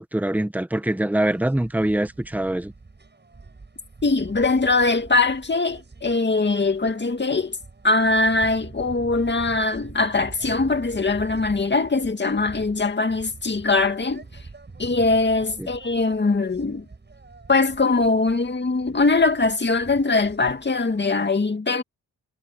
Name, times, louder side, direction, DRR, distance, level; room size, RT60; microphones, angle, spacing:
voice 1, 0.0-2.7 15.6-15.7, right 1 dB, 5° right, 1.4 m, -24 dB
sound 1, 1.2-21.0, right 3 dB, 30° right, 6.8 m, -44 dB
voice 2, 4.0-7.6 7.8-14.2 14.8-16.9 17.5-21.8, left 3 dB, 35° left, 2.2 m, -21 dB
wide cardioid pair, 105°, 33 cm